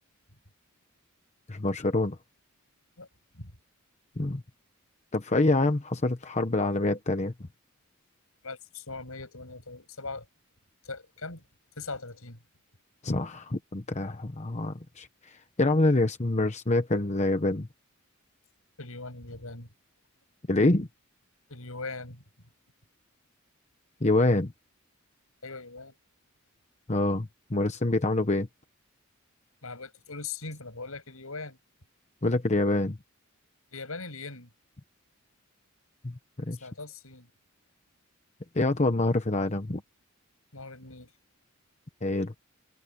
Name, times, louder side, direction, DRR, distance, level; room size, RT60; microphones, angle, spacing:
voice 1, 1.5-2.2 4.2-4.4 5.1-7.3 13.0-17.7 20.5-20.9 24.0-24.5 26.9-28.5 32.2-33.0 36.0-36.6 38.5-39.8 42.0-42.3, left 2 dB, 35° left, 1.0 m, -26 dB
voice 2, 8.4-10.3 10.8-11.4 11.8-12.4 18.8-19.7 21.5-22.2 25.4-25.9 29.6-31.6 33.7-34.5 36.4-37.3 40.5-41.1, left 3 dB, 75° left, 7.5 m, -40 dB
head